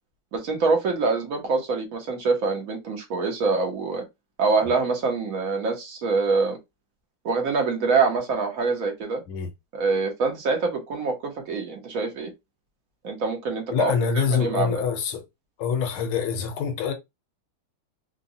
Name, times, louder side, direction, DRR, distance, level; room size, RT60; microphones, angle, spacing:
voice 1, 0.3-4.0 4.4-6.6 7.2-9.2 9.7-12.3 13.0-14.7, right 4 dB, 50° right, 1.1 m, -25 dB
voice 2, 13.7-15.2 15.6-16.9, left 6 dB, 75° left, 1.5 m, -25 dB
3.9 x 2.3 x 2.6 m
omnidirectional pair, 2.4 m